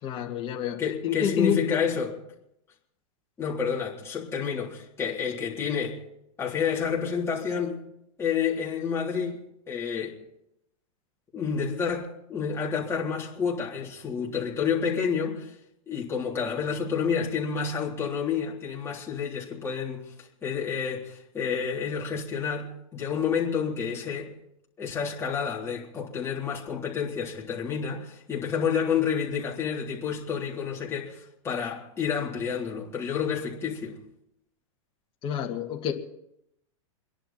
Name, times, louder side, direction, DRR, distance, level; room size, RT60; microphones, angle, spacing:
voice 1, 0.0-1.6 35.2-35.9, left 9 dB, 30° left, 2.2 m, -28 dB
voice 2, 0.8-2.2 3.4-6.0 6.4-7.8 8.2-10.2 11.3-15.6 15.9-24.3 24.8-34.0, left 6 dB, 15° left, 3.7 m, -29 dB
27.0 x 11.0 x 4.4 m
supercardioid pair, 140°, 17 cm